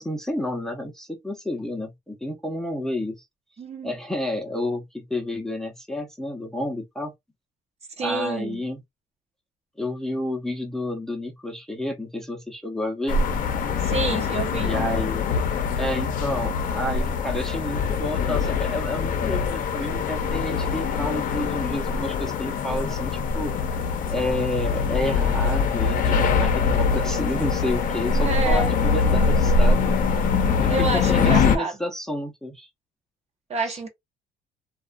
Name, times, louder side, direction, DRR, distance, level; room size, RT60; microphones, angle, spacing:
voice 1, 0.0-3.2 3.8-7.1 8.0-8.8 9.8-13.2 13.8-13.9 14.6-15.3 15.8-23.6 24.1-29.8 30.6-32.7 33.7-33.9, left 1 dB, 5° left, 0.6 m, -30 dB
voice 2, 3.6-3.9 8.0-8.6 13.8-14.7 28.0-28.7 30.7-31.8 33.5-33.9, right 2 dB, 40° right, 0.7 m, -28 dB
sound 1, 13.1-31.6, left 5 dB, 55° left, 0.6 m, -23 dB
2.3 x 2.2 x 2.4 m
cardioid pair, 110°, 17 cm